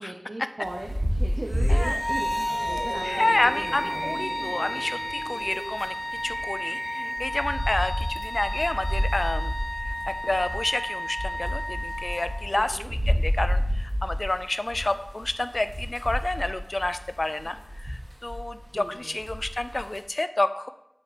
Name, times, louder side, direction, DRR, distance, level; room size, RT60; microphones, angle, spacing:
voice 1, 0.0-4.2 6.9-7.4 12.5-12.9 18.7-19.2, right 1 dB, 85° right, 1 dB, 0.7 m, -39 dB
sound 1, 0.6-6.5 6.8-6.9 7.2-18.8 19.2-20.0, equal, 60° right, 2.1 m, -30 dB
sound 2, 1.5-7.6 8.0-8.2, right 1 dB, 35° right, 0.5 m, -40 dB
voice 2, 1.7-2.0 3.0-5.9 6.2-9.5 9.8-20.7, left 2 dB, 70° left, 12 dB, 0.4 m, -29 dB
Wind instrument woodwind instrument, 1.8-12.6, equal, ahead, 1.1 m, -32 dB
7.5 x 4.2 x 5.0 m, 0.80 s
wide cardioid pair, 40°, 0 cm